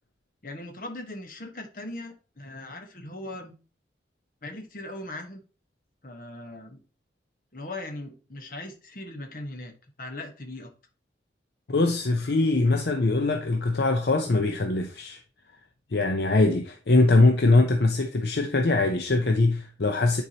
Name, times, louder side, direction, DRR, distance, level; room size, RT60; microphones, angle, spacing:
voice 1, 0.4-3.5 4.4-5.4 6.0-6.8 7.5-10.7, left 1 dB, 50° left, 1.2 m, -39 dB
voice 2, 11.7-15.2 15.9-20.2, left 2 dB, 65° left, 0.7 m, -22 dB
9.7 x 4.6 x 2.8 m
head